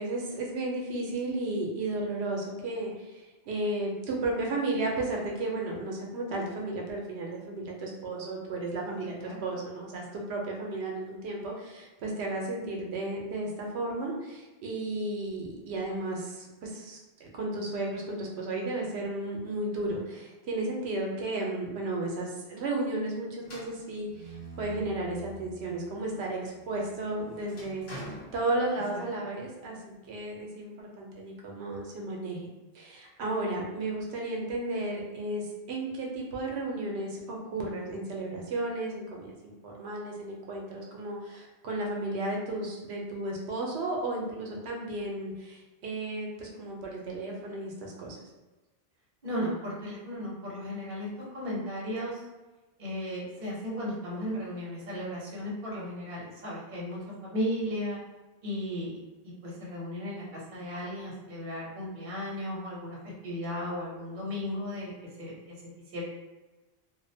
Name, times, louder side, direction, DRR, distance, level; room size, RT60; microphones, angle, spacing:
voice 1, 0.0-27.9 28.3-32.5 32.7-48.2, right 2 dB, 75° right, -1 dB, 0.8 m, -34 dB
sound 1, 23.4-25.8 26.3-29.1, equal, 70° left, 1.0 m, -46 dB
voice 2, 49.2-52.2 52.8-58.0 58.4-63.0 63.2-65.6 65.9-66.0, equal, 50° right, -6 dB, 0.9 m, -35 dB
2.5 x 2.0 x 2.6 m, 1.1 s
omnidirectional pair, 1.1 m